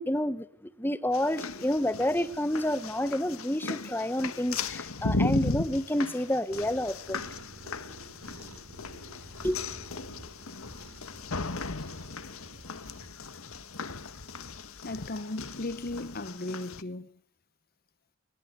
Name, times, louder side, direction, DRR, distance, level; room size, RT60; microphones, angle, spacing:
voice 1, 0.0-7.2 9.4-9.6, left 1 dB, 10° left, 1.6 m, -29 dB
sound 1, 1.1-16.8, left 3 dB, 75° left, 1.6 m, -36 dB
Cat, 6.5-13.1, right 2 dB, 75° right, 5.8 m, -50 dB
sound 2, 8.7-16.3, left 1 dB, 60° left, 6.8 m, -54 dB
voice 2, 14.8-17.1, left 2 dB, 45° left, 1.0 m, -36 dB
24.5 x 21.5 x 9.4 m
head